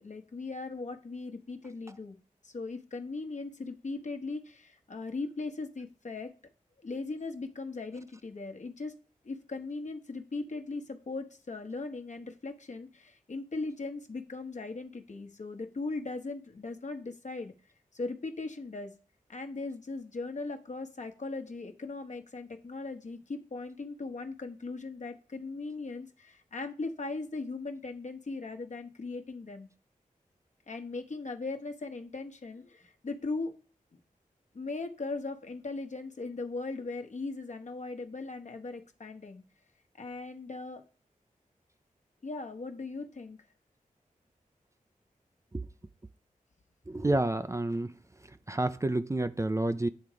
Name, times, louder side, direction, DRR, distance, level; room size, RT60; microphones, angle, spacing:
voice 1, 0.0-2.2 2.4-6.3 6.8-9.0 9.2-17.5 17.9-18.9 19.3-29.7 30.7-33.5 34.5-39.4 40.0-40.8 42.2-43.4, left 3 dB, 55° left, 1.2 m, -38 dB
voice 2, 46.9-47.9 48.5-49.9, right 2 dB, 20° right, 0.5 m, -29 dB
9.2 x 3.6 x 5.0 m
cardioid pair, 60°, 14 cm